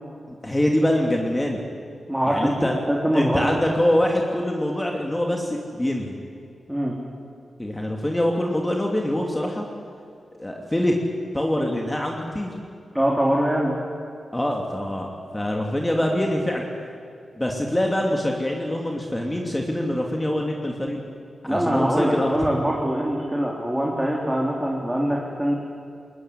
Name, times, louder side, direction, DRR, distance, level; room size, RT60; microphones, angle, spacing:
voice 1, 0.3-1.6 2.3-2.7 3.1-6.1 7.6-9.7 10.4-10.9 11.3-12.5 14.3-16.6 17.4-21.0 21.4-22.3, left 1 dB, 15° left, 0 dB, 2.7 m, -24 dB
voice 2, 2.1-2.5 2.9-3.5 6.7-6.9 12.9-13.8 21.5-25.5, equal, 5° right, -3 dB, 3.6 m, -23 dB
21.0 x 20.5 x 9.7 m, 2.3 s
cardioid pair, 80°, 0 cm